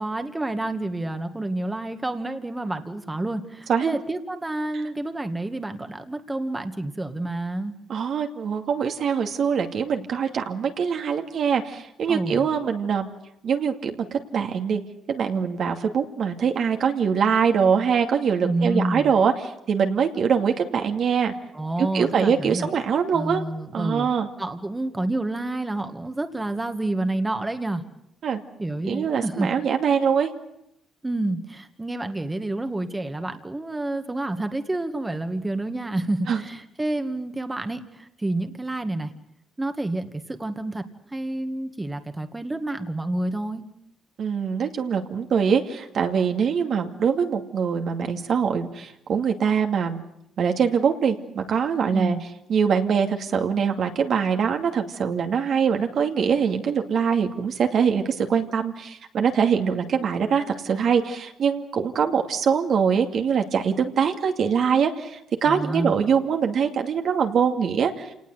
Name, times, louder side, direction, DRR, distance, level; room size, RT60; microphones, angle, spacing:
voice 1, 0.0-7.7 12.1-12.5 18.4-19.1 21.5-22.7 23.1-24.1 24.4-27.8 28.6-29.5 31.0-39.1 39.6-40.8 41.1-43.6 51.9-52.2 65.4-66.0, right 2 dB, 15° right, 7 dB, 1.9 m, -29 dB
voice 2, 7.9-13.1 13.4-14.8 15.1-21.3 21.8-23.4 23.7-24.3 28.2-28.4 28.8-30.3 36.3-36.4 44.2-50.0 50.4-52.2 52.5-68.1, right 6 dB, 65° right, 5 dB, 2.4 m, -23 dB
27.5 x 19.0 x 8.0 m, 0.77 s
cardioid pair, 90°, 0 cm